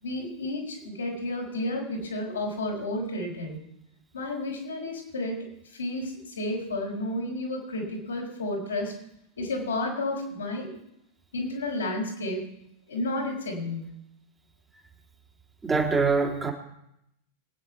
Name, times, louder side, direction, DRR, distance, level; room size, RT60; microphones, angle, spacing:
voice 1, 0.0-3.6 4.1-5.4 5.7-8.9 9.4-10.7 11.3-12.5 12.9-13.9, left 1 dB, 75° left, -3 dB, 4.7 m, -31 dB
voice 2, 15.6-16.5, right 4 dB, 15° right, 1 dB, 2.5 m, -24 dB
25.0 x 9.6 x 4.6 m, 0.79 s
figure-of-eight pair, 90°, 0 cm